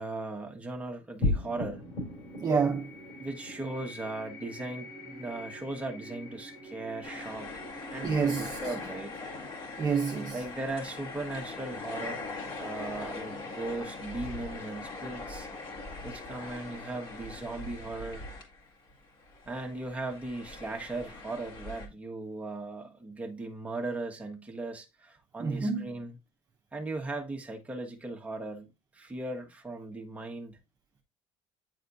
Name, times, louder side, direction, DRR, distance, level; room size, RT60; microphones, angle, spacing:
voice 1, 0.0-1.8 3.2-7.5 7.9-9.2 10.3-12.2 12.6-15.5 16.0-18.3 19.4-26.2 26.7-30.6, right 2 dB, 10° right, 1.4 m, -38 dB
sound 1, 1.2-11.9, left 2 dB, 60° left, 3.4 m, -39 dB
voice 2, 2.4-2.9 8.0-8.6 9.8-10.4 25.4-25.9, right 5 dB, 30° right, 1.0 m, -28 dB
sound 2, 7.0-18.9 19.2-21.9, left 3 dB, 40° left, 2.0 m, -41 dB
9.4 x 4.1 x 2.6 m
cardioid pair, 135°, 12 cm